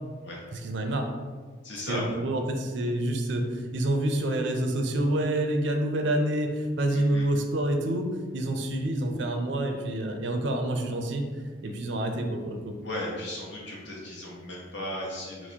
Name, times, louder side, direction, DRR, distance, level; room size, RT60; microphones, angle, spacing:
voice 1, 0.5-1.1 1.9-11.3 11.6-12.8, right 1 dB, 65° right, 4 dB, 0.4 m, -28 dB
voice 2, 1.6-2.1 6.9-7.3 12.8-15.5, left 1 dB, 65° left, -4 dB, 0.9 m, -36 dB
4.5 x 2.0 x 2.7 m, 1.5 s
head